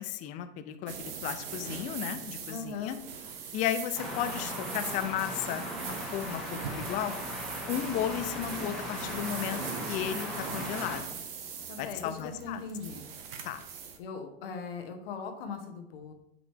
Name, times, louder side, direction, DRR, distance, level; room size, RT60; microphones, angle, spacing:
voice 1, 0.0-3.0 3.5-5.6 6.1-7.1 7.7-9.6 9.9-11.2 11.8-12.6 13.4-13.6, left 10 dB, 25° left, 10 dB, 0.4 m, -34 dB
sound 1, 0.9-14.0, right 6 dB, 60° right, 1.1 m, -41 dB
voice 2, 2.5-3.0 11.7-13.0 14.0-16.1, left 5 dB, 60° left, 5 dB, 1.2 m, -39 dB
sound 2, 4.0-11.0, left 1 dB, ahead, 1.6 m, -38 dB
7.8 x 3.9 x 3.5 m, 0.82 s
hypercardioid pair, 105°, 32 cm